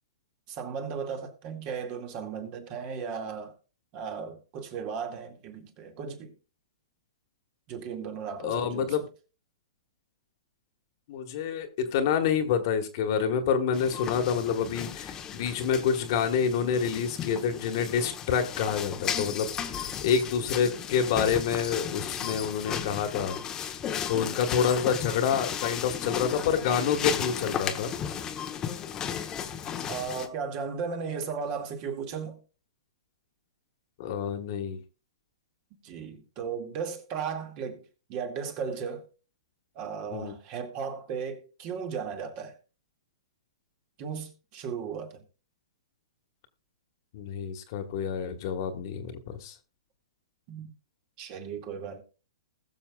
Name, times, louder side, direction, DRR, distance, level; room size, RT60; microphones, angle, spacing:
voice 1, 0.5-3.5 3.9-6.3 7.7-9.1 29.9-32.4 35.8-39.1 39.8-42.6 44.0-45.2 50.5-50.7 51.2-52.0, right 6 dB, 40° right, 2.2 m, -36 dB
voice 2, 8.4-9.1 11.1-23.4 24.1-27.9 34.0-34.8 40.1-40.4 47.1-49.5, left 7 dB, 50° left, 1.6 m, -28 dB
sound 1, 13.7-30.3, left 8 dB, 20° left, 1.1 m, -35 dB
20.5 x 6.9 x 2.4 m
hypercardioid pair, 135°, 3 cm